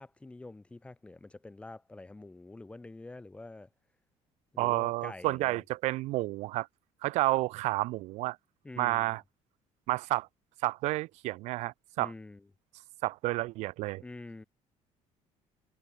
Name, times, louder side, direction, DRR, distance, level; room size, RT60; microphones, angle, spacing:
voice 1, 0.0-3.7 4.5-5.6 8.6-9.2 12.0-12.5 14.0-14.4, left 2 dB, 10° left, 1.3 m, -47 dB
voice 2, 4.6-6.7 7.0-8.4 8.8-9.2 9.9-10.3 10.6-12.1 13.0-14.0, right 19 dB, 70° right, 0.4 m, -30 dB
cardioid pair, 160°, 12 cm